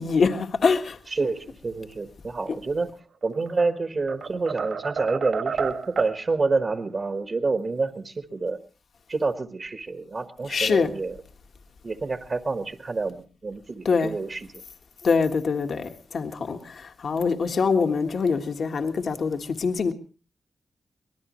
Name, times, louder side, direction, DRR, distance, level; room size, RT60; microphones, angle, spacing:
voice 1, 0.0-1.0 10.5-10.9 13.8-14.2 15.0-19.9, left 5 dB, 65° left, 1.5 m, -24 dB
voice 2, 1.1-2.9 3.2-8.6 9.1-11.2 11.8-14.5, right 3 dB, 45° right, 1.3 m, -28 dB
sound 1, 3.2-3.7 4.1-6.2, right 6 dB, 70° right, 2.6 m, -31 dB
24.5 x 19.0 x 3.0 m
wide cardioid pair, 100°, 0 cm